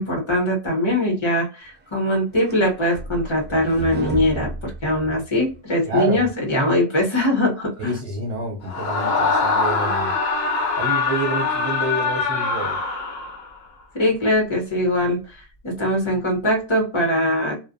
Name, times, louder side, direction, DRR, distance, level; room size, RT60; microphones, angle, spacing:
voice 1, 0.0-8.0 13.9-15.4 15.6-17.6, left 1 dB, 25° left, 1.0 m, -21 dB
sound 1, 1.9-5.6, right 2 dB, 15° right, 0.3 m, -32 dB
voice 2, 5.9-6.3 7.8-10.1 10.8-12.8, right 2 dB, 60° right, 0.8 m, -28 dB
Screaming, 8.7-13.5, left 4 dB, 65° left, 0.8 m, -23 dB
2.4 x 2.2 x 2.4 m
omnidirectional pair, 1.2 m